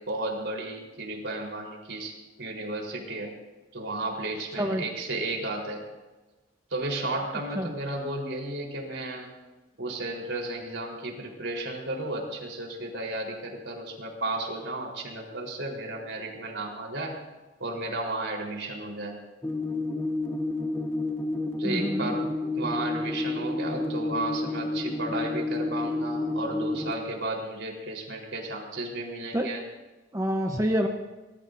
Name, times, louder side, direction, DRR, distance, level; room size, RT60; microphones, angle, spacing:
voice 1, 0.0-3.3 3.7-5.8 6.7-9.3 9.8-17.2 17.6-19.2 21.6-22.3 22.5-29.6, right 2 dB, 70° right, 0 dB, 4.2 m, -33 dB
sound 1, 19.4-26.9, left 2 dB, 10° left, 1.0 m, -30 dB
voice 2, 21.6-22.1 29.3-29.5 30.1-30.9, equal, 15° right, 3 dB, 0.9 m, -27 dB
24.0 x 19.5 x 2.7 m, 1.1 s
head